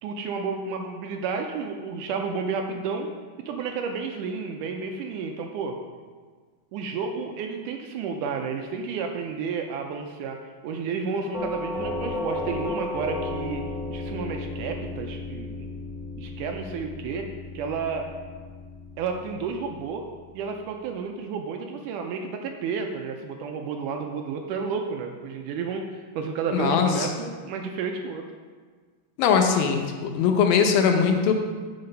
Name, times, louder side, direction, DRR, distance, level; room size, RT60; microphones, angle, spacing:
voice 1, 0.0-3.1 3.5-5.8 6.7-10.4 10.6-13.6 13.9-15.7 16.2-17.3 17.5-18.1 19.0-20.0 20.3-28.3, right 5 dB, 80° right, 3 dB, 2.0 m, -31 dB
Doorbell, 11.3-20.2, left 2 dB, 50° left, 1.0 m, -34 dB
voice 2, 26.5-27.1 29.2-31.3, left 6 dB, 85° left, 5 dB, 2.6 m, -21 dB
7.8 x 5.9 x 5.3 m, 1.5 s
omnidirectional pair, 4.0 m